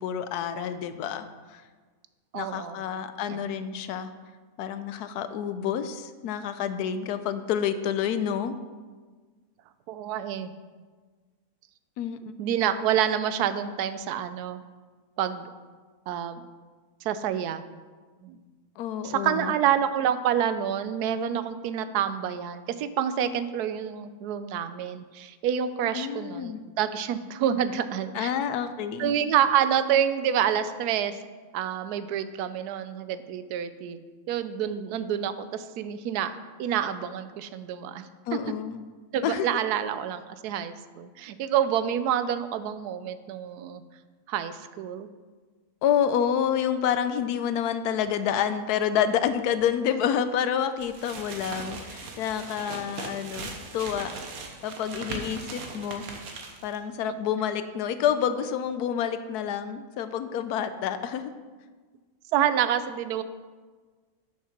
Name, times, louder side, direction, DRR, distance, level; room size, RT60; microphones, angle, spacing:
voice 1, 0.0-1.6 2.3-4.1 4.6-8.5 12.0-12.2 18.8-19.6 25.9-26.6 28.1-29.2 38.3-38.8 39.2-39.5 45.8-54.1 54.6-56.1 56.6-61.3, left 8 dB, 90° left, 11 dB, 1.1 m, -28 dB
voice 2, 2.3-2.8 3.3-3.4 9.9-10.5 12.4-14.6 15.2-15.5 16.1-16.4 17.0-17.6 18.2-18.4 19.0-28.3 29.0-31.2 31.5-34.0 34.3-38.1 39.1-43.8 44.3-45.1 62.3-63.2, right 9 dB, 90° right, 12 dB, 1.1 m, -28 dB
sound 1, 50.8-56.8, right 3 dB, 70° right, 1.4 m, -39 dB
6.5 x 6.4 x 5.8 m, 1.4 s
omnidirectional pair, 1.6 m